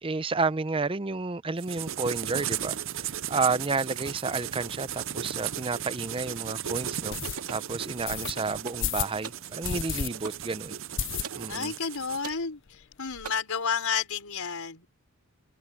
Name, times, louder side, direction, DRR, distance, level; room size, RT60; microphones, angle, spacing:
voice 1, 0.0-7.2 7.5-10.8 11.4-11.7, right 4 dB, 25° right, 0.6 m, -31 dB
sound 1, 1.6-12.3, right 10 dB, 60° right, 0.7 m, -36 dB
sound 2, 5.7-5.8 6.3-6.4 7.1-7.4 8.1-8.3 8.8-9.2 9.6-10.1 10.4-10.5 11.0-11.6 12.0-12.1 12.3-12.4 12.7-13.3, left 9 dB, 55° left, 0.5 m, -32 dB
sound 3, 7.2-7.7 8.2-8.9 9.2-9.5 10.2-10.5 11.2-11.5 12.2-12.5 13.2-13.3, right 5 dB, 80° right, 2.3 m, -40 dB
voice 2, 11.5-14.9, left 6 dB, 75° left, 4.5 m, -31 dB
head